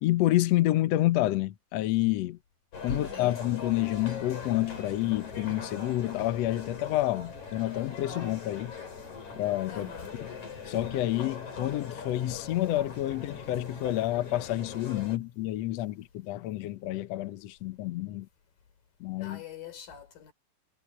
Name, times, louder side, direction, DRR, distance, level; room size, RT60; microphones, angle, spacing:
voice 1, 0.0-2.4 2.8-8.8 9.4-9.9 10.2-10.3 10.7-18.3 19.0-19.4, left 15 dB, 85° left, 1.4 m, -29 dB
sound 1, 2.7-15.2, left 5 dB, 50° left, 6.9 m, -41 dB
voice 2, 2.9-3.4 9.7-10.2 19.2-20.3, left 7 dB, 65° left, 5.2 m, -45 dB
omnidirectional pair, 4.3 m